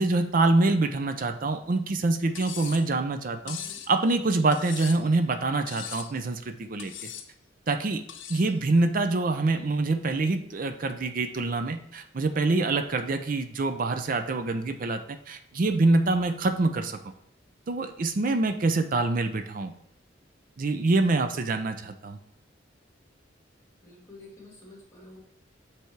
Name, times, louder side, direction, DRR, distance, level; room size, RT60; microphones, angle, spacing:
voice 1, 0.0-3.6 3.9-7.1 7.7-8.0 8.3-15.0 15.3-17.0 17.7-19.7 20.6-22.2, right 2 dB, 45° right, 7 dB, 0.5 m, -25 dB
Cutlery silverware, 2.3-2.9 3.5-3.9 4.5-5.1 5.7-6.2 6.8-7.3 8.1-8.5, left 9 dB, 85° left, 0.6 m, -39 dB
voice 2, 3.4-3.8 23.8-25.2, left 2 dB, 15° left, -2 dB, 2.1 m, -49 dB
7.0 x 3.4 x 4.6 m, 0.75 s
head